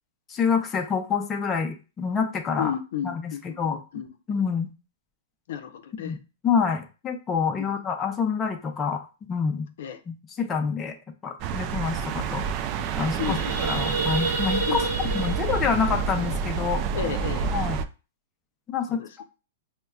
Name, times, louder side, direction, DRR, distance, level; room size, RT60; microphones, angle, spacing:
voice 1, 0.3-2.7 3.0-3.3 3.6-3.8 4.3-4.7 6.0-6.2 6.4-9.0 9.3-9.7 10.1-11.0 11.2-12.4 13.0-13.4 13.6-14.8 15.1-16.8 17.5-17.8 18.7-19.0, left 6 dB, 20° left, 3 dB, 0.5 m, -27 dB
voice 2, 2.6-4.1 5.5-6.2 7.6-7.7 9.8-10.0 13.2-13.6 14.7-15.1 16.9-17.5 18.9-19.3, left 9 dB, 65° left, 6 dB, 0.5 m, -33 dB
sound 1, 11.4-17.8, right 6 dB, 40° right, 0.3 m, -29 dB
sound 2, 11.8-11.9 12.1-12.4 12.7-17.1, right 4 dB, 90° right, 0.9 m, -31 dB
5.2 x 2.1 x 2.3 m, 0.32 s
hypercardioid pair, 140°, 0 cm